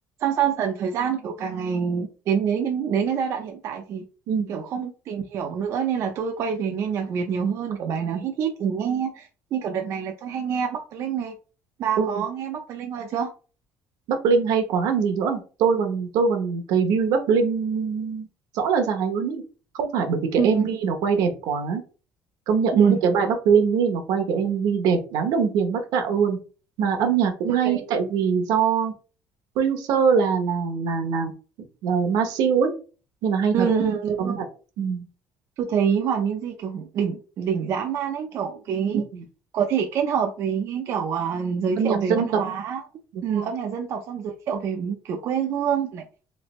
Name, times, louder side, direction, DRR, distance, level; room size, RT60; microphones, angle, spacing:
voice 1, 0.2-4.0 4.5-11.4 11.8-13.3 20.4-20.7 22.7-23.0 27.5-27.9 33.5-34.4 35.6-39.0 39.5-42.8 43.2-46.0, right 7 dB, 45° right, 3 dB, 0.4 m, -26 dB
voice 2, 4.3-4.6 12.0-12.2 14.1-18.3 18.5-19.4 19.7-21.8 22.5-26.4 26.8-28.9 29.6-31.3 31.8-32.7 33.2-33.7 34.2-34.4 34.8-35.0 38.9-39.2 41.8-42.3 43.1-43.5, right 6 dB, 70° right, 5 dB, 0.8 m, -23 dB
3.2 x 3.2 x 3.0 m, 0.35 s
cardioid pair, 180°, 7 cm